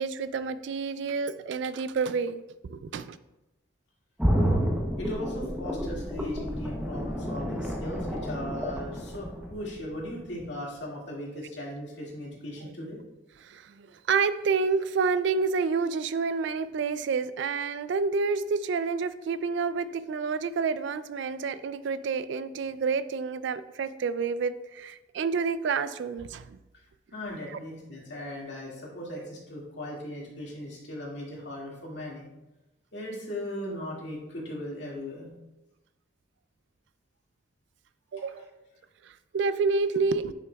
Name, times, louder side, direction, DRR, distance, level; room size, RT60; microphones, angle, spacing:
voice 1, 0.0-3.2 13.4-26.6 27.5-27.6 38.1-38.5 39.0-40.3, right 5 dB, 70° right, 14 dB, 0.3 m, -29 dB
sound 1, 4.2-10.0 10.4-10.5, equal, 5° right, 0.7 m, -30 dB
voice 2, 5.0-13.0 26.7-26.8 27.1-32.3 32.9-35.3 38.1-38.2, left 1 dB, 65° left, -3 dB, 2.0 m, -38 dB
9.4 x 5.8 x 2.3 m, 0.97 s
head